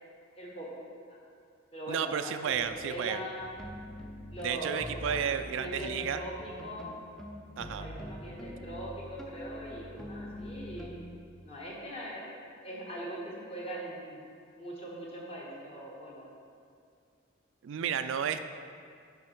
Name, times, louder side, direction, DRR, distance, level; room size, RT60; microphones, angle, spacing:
voice 1, 0.3-1.2 1.7-3.5 4.3-6.9 7.6-10.9 11.4-14.2 14.6-16.3, right 1 dB, 30° left, -4 dB, 1.3 m, -41 dB
voice 2, 1.9-3.2 4.4-6.2 7.6-7.9 17.6-18.4, right 8 dB, 65° right, 10 dB, 0.3 m, -32 dB
sound 1, 2.5-2.8 3.4-5.2 5.6-11.2, equal, ahead, 0.5 m, -44 dB
7.6 x 5.4 x 4.4 m, 2.3 s
head